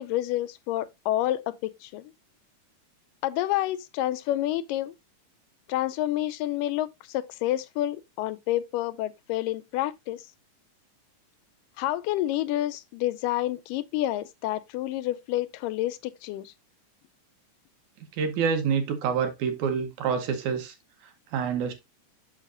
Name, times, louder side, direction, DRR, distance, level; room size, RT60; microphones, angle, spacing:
voice 1, 0.0-2.1 3.2-4.9 5.7-10.3 11.8-16.5, left 14 dB, 85° left, 2.2 m, -29 dB
voice 2, 18.2-20.7 21.3-21.7, right 6 dB, 70° right, 2.3 m, -27 dB
7.3 x 6.5 x 2.5 m
omnidirectional pair, 3.8 m